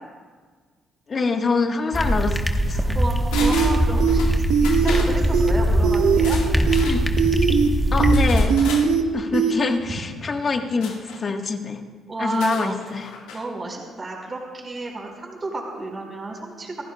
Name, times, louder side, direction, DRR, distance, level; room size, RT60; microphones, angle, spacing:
voice 1, 1.1-3.0 6.8-7.0 7.9-8.5 9.1-11.8 12.2-13.1, left 4 dB, 45° left, 4 dB, 1.6 m, -25 dB
sound 1, 1.9-8.5, equal, ahead, 1.4 m, -21 dB
voice 2, 2.7-6.4 12.1-12.8 13.3-16.8, right 2 dB, 35° right, -1 dB, 5.0 m, -31 dB
sound 2, 3.3-4.3 4.6-5.1 6.1-7.0 8.1-8.9 10.8-11.2 12.2-13.4 13.7-13.8, left 5 dB, 85° left, 1.9 m, -34 dB
sound 3, 3.3-3.7 4.0-4.2 4.5-5.0 5.3-5.5 5.8-6.4 6.7-6.9 7.2-7.7 8.0-8.2 8.5-9.0 9.3-9.5, right 7 dB, 75° right, 1.1 m, -20 dB
27.0 x 15.0 x 2.4 m, 1.5 s
supercardioid pair, 60°, 0 cm